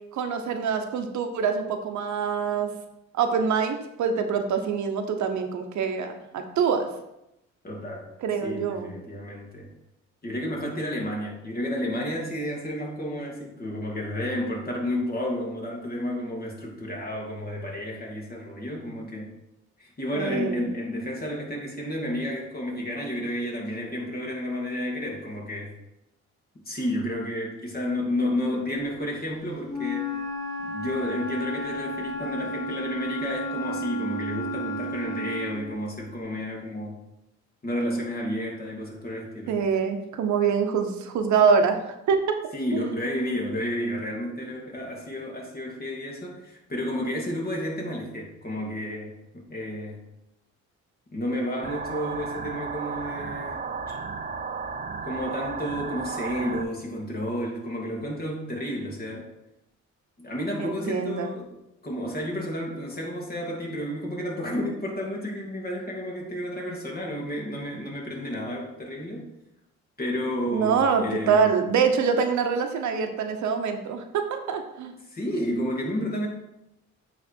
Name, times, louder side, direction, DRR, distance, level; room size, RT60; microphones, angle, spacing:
voice 1, 0.1-2.7 3.1-6.9 8.2-8.9 20.1-20.6 39.5-41.8 42.1-42.2 42.7-42.9 60.6-61.3 70.5-74.9, right 6 dB, 70° right, 6 dB, 0.8 m, -25 dB
voice 2, 7.6-8.1 8.4-9.7 10.2-19.3 19.8-25.7 26.6-30.3 30.6-37.0 37.6-39.6 42.5-50.0 51.1-54.0 55.0-59.3 60.2-61.5 61.8-69.3 70.0-71.5 75.1-76.3, equal, 30° left, -2 dB, 2.2 m, -31 dB
Wind instrument woodwind instrument, 29.7-35.7, equal, 10° left, 1.3 m, -32 dB
sound 1, 51.6-56.6, right 5 dB, 30° right, 0.5 m, -34 dB
8.7 x 3.3 x 4.4 m, 0.87 s
cardioid pair, 90°, 30 cm